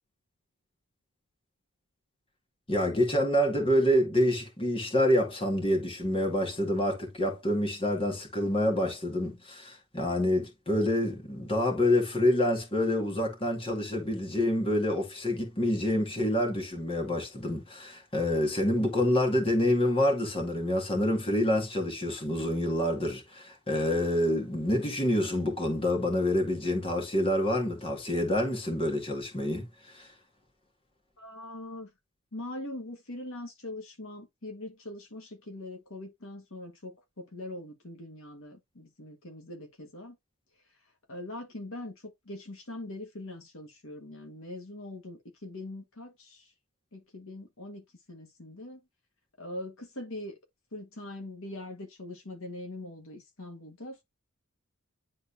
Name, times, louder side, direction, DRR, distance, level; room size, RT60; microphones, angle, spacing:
voice 1, 2.7-30.1, left 1 dB, 25° left, 2.0 m, -27 dB
voice 2, 31.2-31.9 32.3-40.2 41.1-46.5 46.9-48.8 49.4-50.4 50.7-54.0, left 1 dB, 65° left, 1.6 m, -42 dB
10.0 x 3.9 x 2.7 m
head